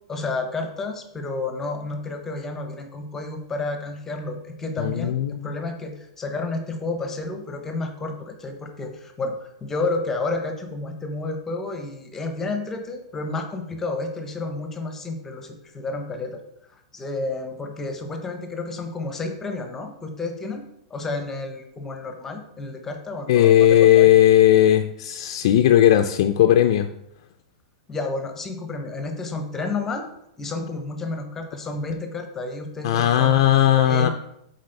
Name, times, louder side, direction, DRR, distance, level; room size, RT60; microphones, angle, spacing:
voice 1, 0.1-16.4 16.9-24.1 27.9-30.1 30.4-33.5 33.8-34.1, left 3 dB, 10° left, 5 dB, 0.7 m, -31 dB
voice 2, 4.8-5.5 23.3-26.9 32.8-34.1, left 11 dB, 50° left, 6 dB, 0.4 m, -17 dB
8.0 x 4.1 x 3.3 m, 0.79 s
supercardioid pair, 165°, 3 cm